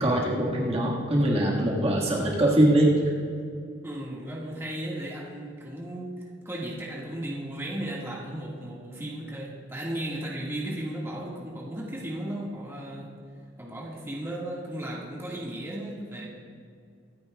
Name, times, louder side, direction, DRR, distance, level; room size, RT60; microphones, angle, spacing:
voice 1, 0.0-2.9, right 1 dB, 35° right, -4 dB, 1.7 m, -22 dB
voice 2, 3.8-6.1 6.5-13.1 13.6-16.3, right 1 dB, 15° right, -5 dB, 1.7 m, -35 dB
23.5 x 9.7 x 2.3 m, 2.4 s
head